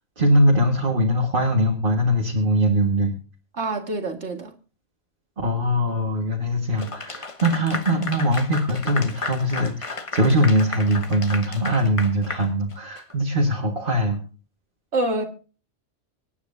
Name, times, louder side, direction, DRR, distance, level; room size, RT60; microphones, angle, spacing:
voice 1, 0.2-3.1 5.4-14.2, equal, 45° right, 1.9 m, -21 dB
voice 2, 3.5-4.5 14.9-15.3, right 2 dB, 65° right, 2.2 m, -26 dB
Clapping / Applause, 6.8-13.1, left 3 dB, 30° left, 1.1 m, -33 dB
25.0 x 9.6 x 2.7 m
omnidirectional pair, 1.2 m